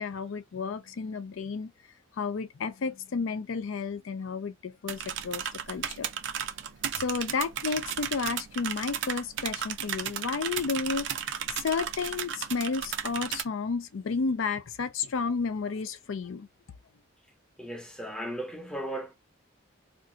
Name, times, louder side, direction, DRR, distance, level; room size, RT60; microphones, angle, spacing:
voice 1, 0.0-1.7 2.2-6.1 6.9-11.1 11.6-16.5, left 5 dB, 70° left, 0.4 m, -32 dB
sound 1, 4.9-13.4, right 9 dB, 60° right, 0.4 m, -34 dB
voice 2, 17.6-19.1, right 1 dB, 5° left, 0.6 m, -36 dB
2.5 x 2.4 x 3.8 m
head